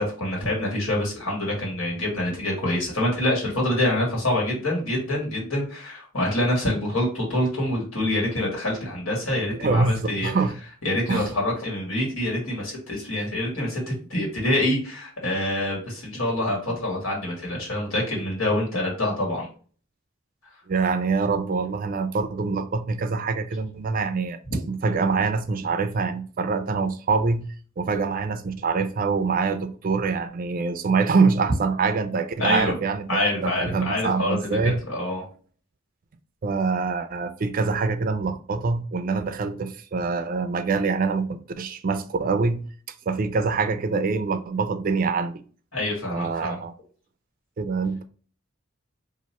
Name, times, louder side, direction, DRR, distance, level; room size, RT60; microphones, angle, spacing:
voice 1, 0.0-10.3 10.8-19.5 32.4-32.7 33.1-34.4 34.6-35.3 45.7-46.6, left 1 dB, 80° left, 1.8 m, -26 dB
voice 2, 9.6-10.6 11.1-11.3 20.7-24.4 24.7-27.5 27.8-34.8 36.4-42.6 43.1-45.4 46.1-46.7 47.6-48.0, right 4 dB, 45° right, 0.4 m, -25 dB
2.9 x 2.5 x 4.2 m
head